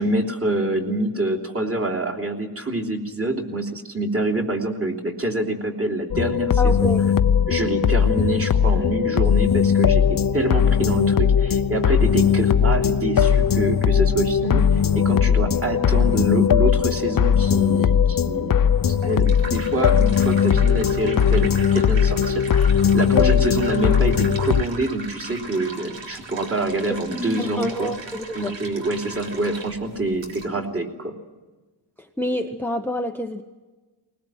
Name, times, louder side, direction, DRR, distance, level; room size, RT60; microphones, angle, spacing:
voice 1, 0.0-6.7 7.5-27.9 28.3-31.1, right 2 dB, 30° right, 1 dB, 3.1 m, -26 dB
sound 1, 6.1-24.6, left 7 dB, 50° left, 0.8 m, -19 dB
voice 2, 6.6-7.1 23.1-23.3 26.9-28.6 32.0-33.4, equal, 5° left, 6 dB, 0.8 m, -27 dB
sound 2, 18.7-30.5, right 3 dB, 75° right, 3.6 m, -38 dB
20.5 x 20.0 x 9.1 m, 1.3 s
wide cardioid pair, 165°, 45 cm